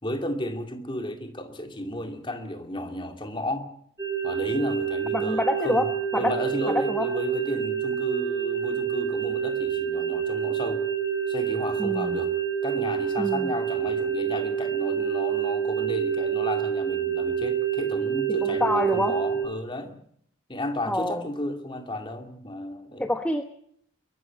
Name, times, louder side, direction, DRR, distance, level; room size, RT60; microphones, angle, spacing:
voice 1, 0.0-3.7 4.2-5.9 6.1-10.8 11.3-12.3 12.6-20.0 20.5-23.1, left 1 dB, 25° left, 5 dB, 2.4 m, -33 dB
sound 1, 4.0-19.5, right 8 dB, 15° right, 6.0 m, -27 dB
voice 2, 5.1-5.9 6.1-6.3 6.7-7.1 11.8-12.2 13.2-13.5 18.4-19.1 20.8-21.3 23.0-23.4, left 1 dB, 5° left, 5 dB, 1.0 m, -26 dB
22.5 x 12.5 x 9.3 m, 0.66 s
head